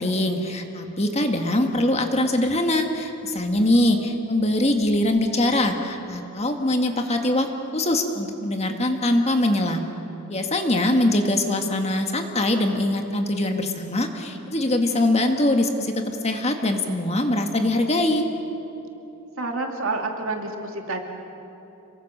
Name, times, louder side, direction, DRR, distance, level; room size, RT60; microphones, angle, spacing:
voice 1, 0.0-9.9 10.3-18.2, left 1 dB, 30° left, 4 dB, 1.7 m, -22 dB
voice 2, 19.4-21.0, right 3 dB, 65° right, 3 dB, 2.6 m, -28 dB
27.5 x 23.0 x 6.6 m, 3.0 s
head